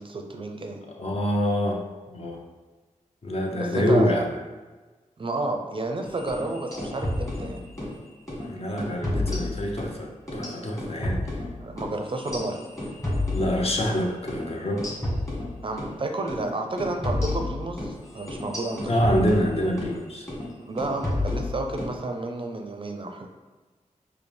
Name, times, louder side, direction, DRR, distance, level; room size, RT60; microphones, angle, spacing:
voice 1, 0.0-0.8 3.5-4.2 5.2-7.7 11.6-12.7 15.6-18.9 20.7-23.3, right 2 dB, 40° right, 3 dB, 0.4 m, -31 dB
voice 2, 1.0-1.8 2.1-2.4 3.2-4.3 8.4-11.3 13.3-14.9 18.9-20.3, equal, 50° left, 0 dB, 0.7 m, -26 dB
sound 1, 6.2-8.0 8.3-8.5 8.8-10.0 10.3-14.0 14.3-14.4 14.8-15.9 16.3-16.5 16.8-20.0 20.3-20.5 20.8-21.9, left 1 dB, 20° left, 1.3 m, -31 dB
4.8 x 2.0 x 3.3 m, 1.3 s
cardioid pair, 60°, 13 cm